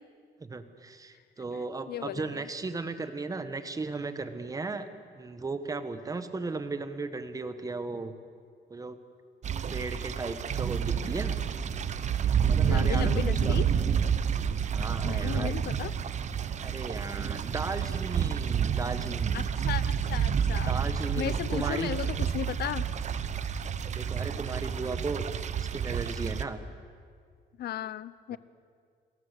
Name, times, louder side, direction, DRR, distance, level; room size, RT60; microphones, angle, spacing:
voice 1, 0.4-4.9 5.1-8.2 8.7-9.0 9.7-11.4 12.5-13.6 14.7-15.5 16.6-19.5 20.6-21.9 23.9-25.3 25.6-26.6 28.3-28.4, right 3 dB, 20° right, 10 dB, 1.4 m, -36 dB
voice 2, 1.9-2.5 12.7-13.7 15.0-15.9 19.3-20.7 21.2-22.9 27.6-28.4, left 12 dB, 65° left, 18 dB, 0.8 m, -35 dB
sound 1, 9.4-26.4, right 7 dB, 40° right, 1.1 m, -29 dB
29.0 x 21.5 x 8.3 m, 2.1 s
cardioid pair, 165°, 18 cm